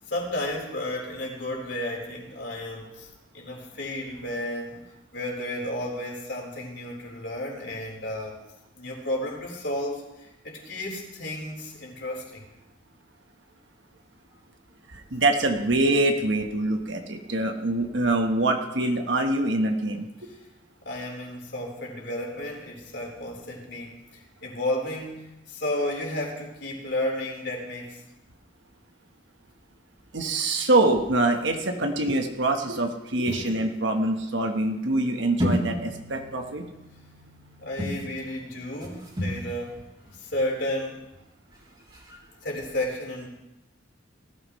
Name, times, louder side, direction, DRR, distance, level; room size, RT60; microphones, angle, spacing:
voice 1, 0.1-3.1 3.3-4.8 5.1-8.4 8.7-12.4 20.2-20.4 20.8-28.0 33.3-33.4 37.6-39.8 40.1-41.0 42.4-43.3, left 1 dB, 65° left, -2 dB, 4.2 m, -32 dB
voice 2, 14.9-20.3 30.1-36.6, right 2 dB, 70° right, 4 dB, 1.3 m, -24 dB
sound 1, 33.3-34.7 35.4-40.4 40.8-40.9 41.1-41.2 41.5-41.6 41.8-42.2, left 1 dB, 25° right, 3.2 m, -33 dB
19.0 x 14.0 x 3.2 m, 0.95 s
head